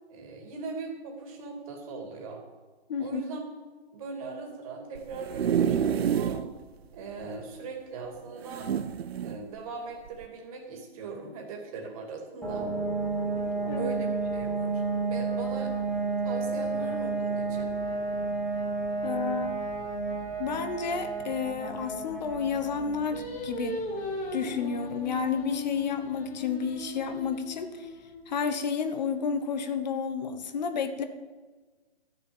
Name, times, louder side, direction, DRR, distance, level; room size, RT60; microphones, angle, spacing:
voice 1, 0.1-2.4 3.0-3.4 3.9-6.4 6.9-8.7 9.2-12.7 13.7-14.8 15.1-15.7 16.2-17.7, right 4 dB, 30° right, 3 dB, 2.5 m, -40 dB
voice 2, 2.9-3.2 13.6-13.9 19.0-19.6 20.4-23.8 24.3-27.9 28.3-31.0, left 6 dB, 40° left, 9 dB, 1.1 m, -31 dB
sound 1, 4.9-6.5 6.9-7.0 7.2-7.3 8.4-9.4 10.1-10.2, right 8 dB, 65° right, 0.7 m, -28 dB
sound 2, 12.4-27.0, right 3 dB, 5° left, 1.6 m, -32 dB
Singing, 23.1-28.4, left 1 dB, 20° left, 2.5 m, -38 dB
13.0 x 6.8 x 8.7 m, 1.3 s
hypercardioid pair, 155°, 33 cm